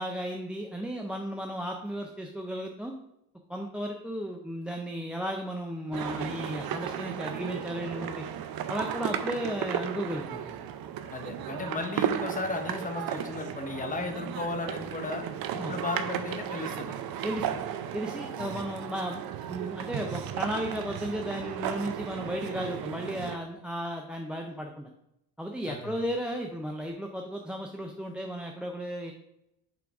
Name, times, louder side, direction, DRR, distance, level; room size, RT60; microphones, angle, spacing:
voice 1, 0.0-2.9 3.5-8.2 8.7-10.6 15.6-15.7 17.2-17.4 17.9-24.9 25.4-29.1, equal, 5° right, 1 dB, 0.4 m, -34 dB
sound 1, 5.9-23.4, right 9 dB, 65° right, 0.6 m, -35 dB
voice 2, 11.1-15.2 15.5-16.9 18.4-18.6 25.7-26.0, left 3 dB, 20° left, 4 dB, 0.9 m, -35 dB
5.8 x 3.8 x 4.7 m, 0.83 s
cardioid pair, 130°, 39 cm